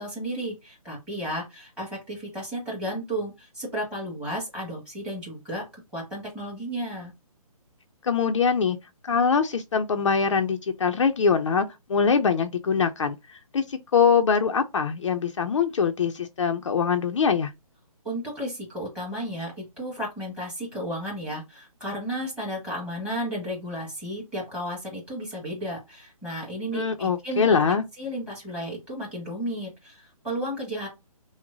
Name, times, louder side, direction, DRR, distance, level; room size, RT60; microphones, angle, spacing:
voice 1, 0.0-7.1 18.0-27.6 28.0-30.9, equal, 5° right, 1.6 m, -33 dB
voice 2, 8.0-8.8 9.0-17.5 26.7-27.8, left 6 dB, 55° left, 0.5 m, -23 dB
5.9 x 2.1 x 2.6 m
hypercardioid pair, 165°, 19 cm